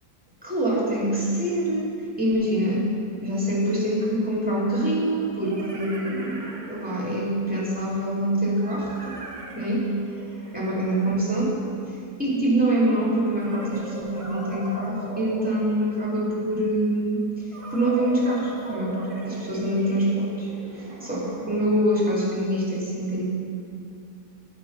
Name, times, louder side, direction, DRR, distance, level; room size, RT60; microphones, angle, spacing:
voice 1, 0.4-2.9 3.2-9.2 9.5-9.9 10.5-11.6 12.2-17.4 17.7-20.5 20.8-23.2, right 1 dB, 5° right, -6 dB, 2.6 m, -25 dB
sound 1, 3.5-3.6 5.0-7.4 8.6-12.1 13.3-16.3 17.5-21.8, equal, 20° right, 1.3 m, -41 dB
15.0 x 5.3 x 5.8 m, 2.4 s
omnidirectional pair, 1.7 m